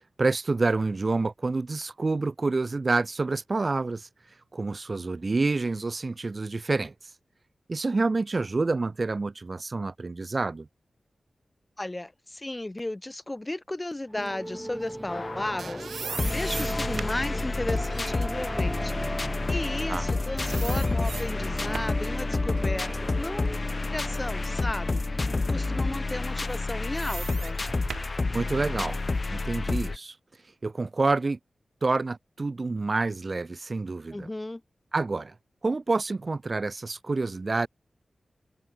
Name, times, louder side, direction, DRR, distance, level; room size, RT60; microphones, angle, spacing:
voice 1, 0.2-4.1 4.5-7.1 7.7-10.7 19.9-20.1 28.3-29.0 29.3-30.2 30.6-31.4 31.8-34.3 34.9-35.3 35.6-37.7, right 3 dB, 45° right, 0.9 m, -28 dB
voice 2, 11.8-23.6 23.9-27.6 34.1-34.6, left 1 dB, 25° left, 3.6 m, -35 dB
sound 1, 14.1-27.0, right 1 dB, 10° right, 0.8 m, -38 dB
sound 2, 15.1-30.0, left 3 dB, 45° left, 1.2 m, -29 dB
sound 3, 15.1-20.1 20.4-22.1 22.6-24.5 25.0-25.1 26.2-29.2, right 6 dB, 85° right, 1.3 m, -41 dB
cardioid pair, 60°, 0 cm